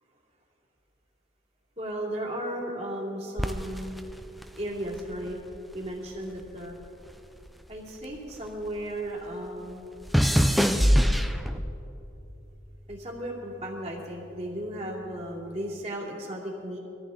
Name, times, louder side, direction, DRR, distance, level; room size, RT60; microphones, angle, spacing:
voice 1, 1.8-4.1 4.6-5.4 5.7-6.8 7.7-9.9 12.9-16.8, right 1 dB, 30° right, -3 dB, 2.7 m, -35 dB
sound 1, 3.4-5.9 6.2-8.8 9.1-11.9 12.6-13.0, equal, ahead, 0.4 m, -26 dB
23.0 x 14.0 x 3.8 m, 2.9 s
head